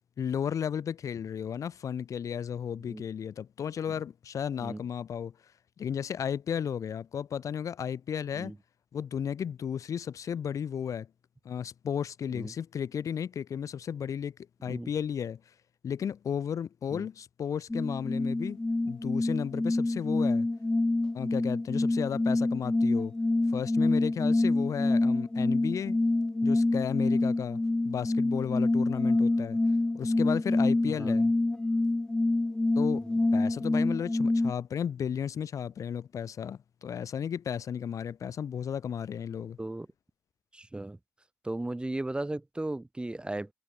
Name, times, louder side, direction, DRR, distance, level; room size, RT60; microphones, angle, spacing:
voice 1, 0.2-5.3 5.8-8.5 8.9-11.1 11.4-14.3 14.6-15.4 15.8-20.5 21.1-23.2 23.5-26.0 26.4-29.6 29.9-31.3 32.8-33.0 33.3-39.6, left 8 dB, 50° left, 1.0 m, -34 dB
sound 1, 17.7-34.5, left 2 dB, 10° left, 0.3 m, -27 dB
voice 2, 40.5-41.0 41.4-43.5, right 2 dB, 15° right, 3.6 m, -36 dB
hypercardioid pair, 50°, 7 cm